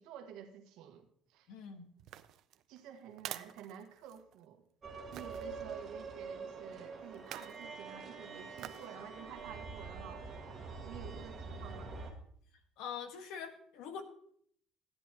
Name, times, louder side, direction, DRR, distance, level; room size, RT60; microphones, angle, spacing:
voice 1, 0.0-1.5 2.7-4.6 5.1-10.3 10.8-12.0, right 9 dB, 75° right, 4 dB, 1.5 m, -51 dB
voice 2, 1.5-1.9 12.8-14.0, left 7 dB, 75° left, 6 dB, 1.5 m, -44 dB
sound 1, 2.0-4.4 5.1-5.5 7.1-7.6 8.6-8.9 9.4-9.5, right 12 dB, 55° right, 0.5 m, -48 dB
sound 2, 4.8-12.1, right 4 dB, 30° right, 1.9 m, -45 dB
14.5 x 10.5 x 3.0 m, 0.63 s
cardioid pair, 170°, 0 cm